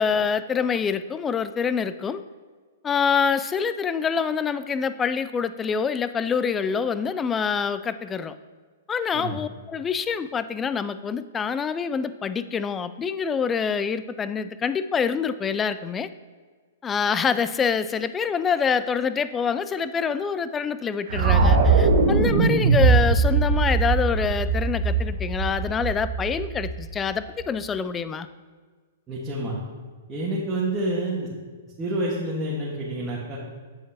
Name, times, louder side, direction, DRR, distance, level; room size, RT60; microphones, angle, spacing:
voice 1, 0.0-2.2 2.8-8.4 8.9-16.1 16.8-28.3, left 6 dB, 20° left, 13 dB, 0.3 m, -26 dB
sound 1, 21.1-27.2, right 4 dB, 60° right, 1.0 m, -21 dB
voice 2, 29.1-29.5 30.1-31.3 31.8-33.4, right 1 dB, 20° right, -6 dB, 1.5 m, -28 dB
8.0 x 7.2 x 2.9 m, 1.5 s
hypercardioid pair, 125°, 0 cm